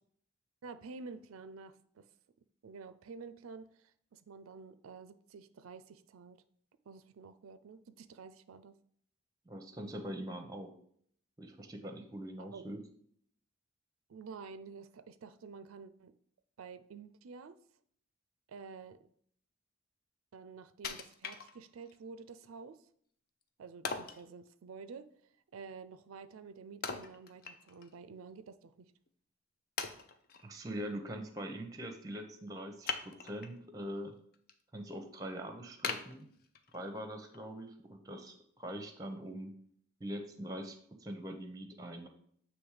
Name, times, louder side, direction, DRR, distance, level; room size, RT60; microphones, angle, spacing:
voice 1, 0.6-2.1 2.6-6.4 6.9-8.8 12.4-12.7 14.1-16.1 16.6-17.6 18.5-19.0 20.3-22.9 23.6-28.9, right 5 dB, 85° right, 13 dB, 0.4 m, -50 dB
voice 2, 9.5-10.7 11.4-12.8 30.4-32.9 33.2-34.2 34.7-36.3 36.7-39.5 40.0-42.1, equal, 15° right, 6 dB, 0.7 m, -43 dB
Wood, 20.8-22.0 22.4-22.5 23.8-24.3 26.8-27.9 28.3-28.4 29.1-29.2 29.8-30.4 32.8-33.6 34.1-34.5 34.9-35.0 35.8-36.9 37.3-37.4, left 5 dB, 45° left, 0.5 m, -40 dB
7.9 x 3.1 x 4.8 m, 0.63 s
head